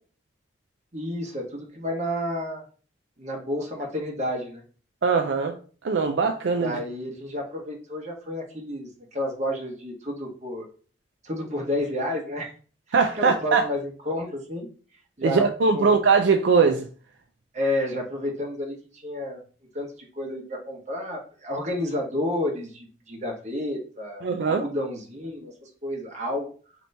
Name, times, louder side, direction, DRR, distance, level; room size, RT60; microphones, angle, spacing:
voice 1, 0.9-2.6 3.2-4.6 6.6-10.7 11.2-12.5 13.1-14.7 15.2-15.5 15.7-15.9 17.5-19.4 19.7-26.5, left 1 dB, 35° right, 1.0 m, -30 dB
voice 2, 5.0-5.5 5.8-6.8 12.9-13.6 15.2-16.9 24.2-24.6, right 5 dB, 70° right, 0.4 m, -21 dB
3.3 x 3.0 x 4.0 m
head